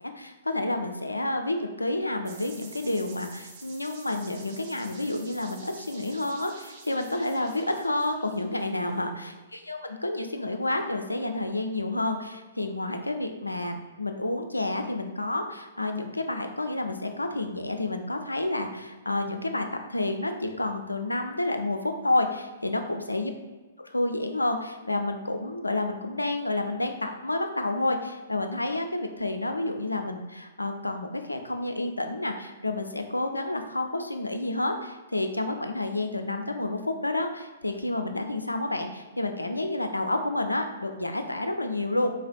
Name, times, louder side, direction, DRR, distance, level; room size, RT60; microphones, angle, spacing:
voice 1, 0.0-23.3 23.9-42.1, left 2 dB, 85° left, 6 dB, 0.4 m, -29 dB
sound 1, 2.3-9.0, right 4 dB, 40° right, 0.7 m, -49 dB
4.0 x 3.4 x 2.2 m, 1.3 s
figure-of-eight pair, 115°, 0 cm